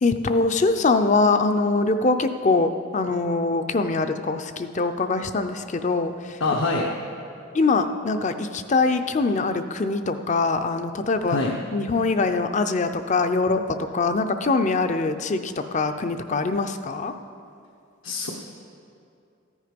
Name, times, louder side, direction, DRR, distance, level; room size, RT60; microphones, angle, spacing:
voice 1, 0.0-6.4 7.5-11.4 11.7-17.2, left 3 dB, 35° left, 9 dB, 0.5 m, -23 dB
voice 2, 6.4-6.9 11.3-11.5 18.0-18.3, left 3 dB, 70° left, 0 dB, 1.0 m, -24 dB
14.5 x 9.7 x 5.2 m, 2.5 s
head